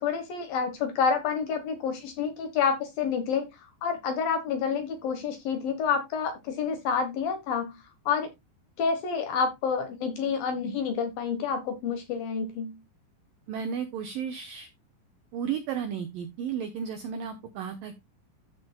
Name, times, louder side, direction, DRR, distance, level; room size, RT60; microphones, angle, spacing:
voice 1, 0.0-3.5 3.8-7.7 8.1-8.3 8.8-12.8, left 6 dB, 65° left, 2.5 m, -28 dB
voice 2, 13.5-14.7 15.3-17.9, right 7 dB, 85° right, 2.0 m, -33 dB
14.0 x 6.3 x 2.2 m
omnidirectional pair, 5.3 m